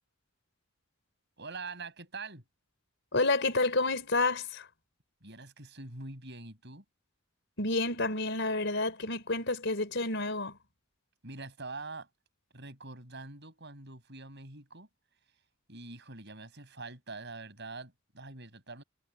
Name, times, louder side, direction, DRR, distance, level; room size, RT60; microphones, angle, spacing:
voice 1, 1.4-2.4 5.2-6.8 11.2-12.1 12.5-14.9 15.7-18.8, right 3 dB, 55° right, 7.3 m, -44 dB
voice 2, 3.1-4.7 7.6-10.6, left 3 dB, 60° left, 4.8 m, -29 dB
head